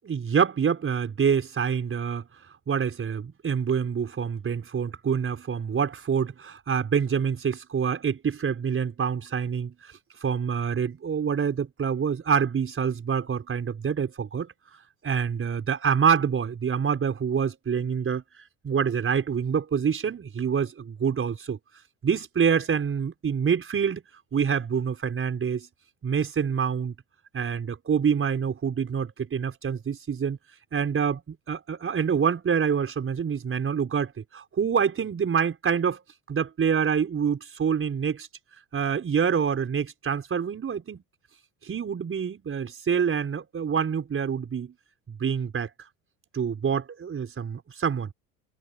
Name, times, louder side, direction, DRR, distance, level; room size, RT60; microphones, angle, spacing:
voice 1, 0.1-2.2 2.7-9.7 10.2-14.5 15.0-18.2 18.6-21.6 22.0-24.0 24.3-25.7 26.0-26.9 27.3-30.4 30.7-36.0 36.3-38.3 38.7-41.0 41.6-44.7 45.1-45.7 46.3-48.1, right 7 dB, 30° right, 5.4 m, -26 dB
hypercardioid pair, 70°, 42 cm